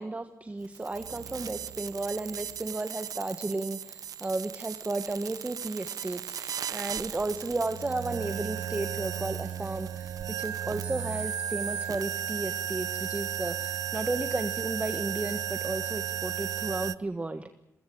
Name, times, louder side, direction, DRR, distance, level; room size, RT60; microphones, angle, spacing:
voice 1, 0.0-17.5, right 2 dB, 20° right, 9 dB, 1.5 m, -34 dB
sound 1, 0.6-17.0, right 9 dB, 75° right, 0.8 m, -35 dB
24.0 x 21.0 x 8.8 m, 0.91 s
cardioid pair, 90°, 6 cm